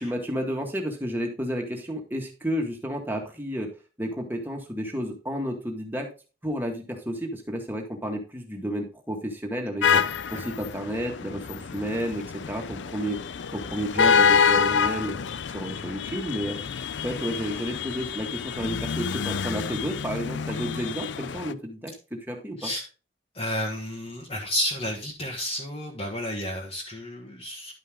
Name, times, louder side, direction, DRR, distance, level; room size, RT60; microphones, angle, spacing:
voice 1, 0.0-3.7 4.0-6.1 6.4-9.9 10.5-13.2 13.5-15.2 15.5-16.6 17.0-22.7, equal, 10° right, 1 dB, 1.9 m, -31 dB
sound 1, 9.8-21.5, left 6 dB, 90° left, 0.5 m, -27 dB
voice 2, 23.3-27.7, left 1 dB, 30° left, -3 dB, 1.5 m, -31 dB
11.5 x 5.4 x 3.8 m, 0.34 s
head